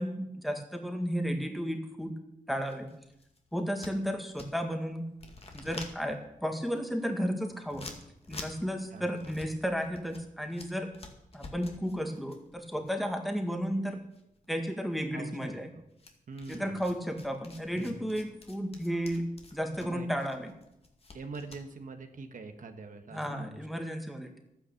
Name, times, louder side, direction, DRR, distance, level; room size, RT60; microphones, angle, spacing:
voice 1, 0.0-2.2 2.5-2.9 3.5-5.0 5.5-7.9 8.3-10.9 11.3-14.0 14.5-15.7 16.5-20.5 23.1-24.4, equal, ahead, 4 dB, 1.9 m, -33 dB
sound 1, 2.5-4.8 5.1-13.9 14.1-15.0 16.0-21.6, left 3 dB, 45° left, 2.2 m, -49 dB
voice 2, 16.3-16.7 17.7-18.0 19.8-20.1 21.1-23.6, right 4 dB, 70° right, 6 dB, 1.4 m, -43 dB
12.0 x 9.7 x 7.2 m, 0.82 s
cardioid pair, 70°, 14 cm